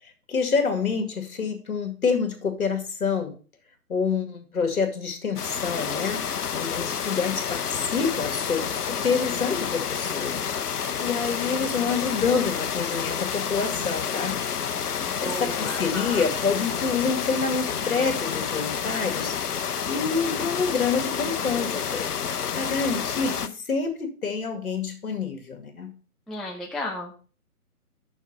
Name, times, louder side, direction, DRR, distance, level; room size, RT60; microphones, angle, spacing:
voice 1, 0.0-3.4 3.9-14.5 15.2-19.4 19.9-22.1 22.5-25.9, left 5 dB, 65° left, 6 dB, 2.1 m, -27 dB
sound 1, 5.4-23.5, left 7 dB, 85° left, 0.8 m, -29 dB
voice 2, 14.7-16.3 26.3-27.1, left 1 dB, ahead, -2 dB, 0.3 m, -35 dB
6.4 x 6.4 x 5.5 m, 0.38 s
hypercardioid pair, 150°, 45 cm